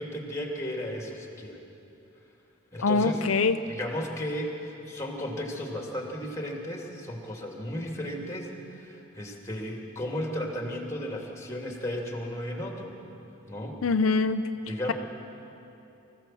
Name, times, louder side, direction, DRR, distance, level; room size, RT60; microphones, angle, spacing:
voice 1, 0.0-1.6 2.7-3.2 3.7-13.0 13.5-13.8 14.7-14.9, left 1 dB, 15° left, 1 dB, 2.6 m, -34 dB
voice 2, 2.8-3.6 13.8-14.4, left 4 dB, 75° left, 9 dB, 0.6 m, -23 dB
24.0 x 15.5 x 7.6 m, 3.0 s
head